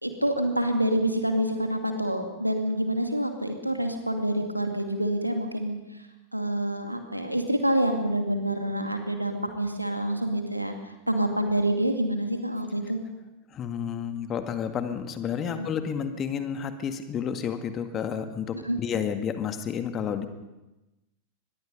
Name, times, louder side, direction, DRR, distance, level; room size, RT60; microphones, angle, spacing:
voice 1, 0.0-5.8 6.3-10.7 11.1-13.0 15.5-15.7 18.6-18.8, right 1 dB, 90° right, 5 dB, 2.4 m, -27 dB
voice 2, 13.5-20.3, left 7 dB, 30° left, 8 dB, 1.9 m, -31 dB
24.0 x 21.0 x 5.3 m, 1.0 s
figure-of-eight pair, 90°, 0 cm